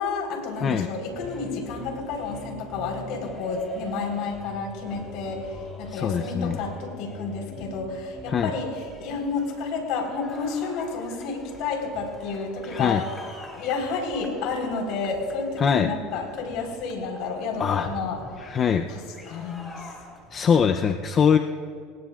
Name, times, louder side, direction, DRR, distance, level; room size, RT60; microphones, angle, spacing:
voice 1, 0.0-13.0 13.5-18.5 18.9-19.9, left 4 dB, 65° left, 2 dB, 4.2 m, -30 dB
sound 1, 1.0-20.5, left 2 dB, 15° left, 3.5 m, -44 dB
voice 2, 5.9-6.6 8.3-8.5 12.7-13.0 15.6-15.9 17.6-17.9 18.4-18.9 20.3-21.4, left 7 dB, 35° left, 6 dB, 0.6 m, -22 dB
27.5 x 19.0 x 2.5 m, 2.2 s
supercardioid pair, 120°, 0 cm